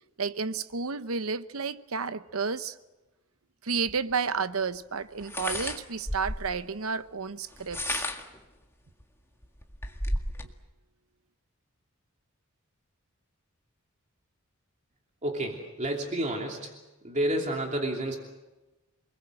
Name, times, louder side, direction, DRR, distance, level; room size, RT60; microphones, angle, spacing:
voice 1, 0.2-2.8 3.6-8.1, right 5 dB, 80° right, 0.9 m, -31 dB
sound 1, 3.9-4.0 5.2-6.6 7.5-8.4 9.0-9.1 9.4-10.5, left 1 dB, 10° left, 1.9 m, -33 dB
voice 2, 15.2-16.7 17.0-18.2, right 1 dB, 35° right, 2.9 m, -30 dB
28.5 x 21.0 x 7.7 m
head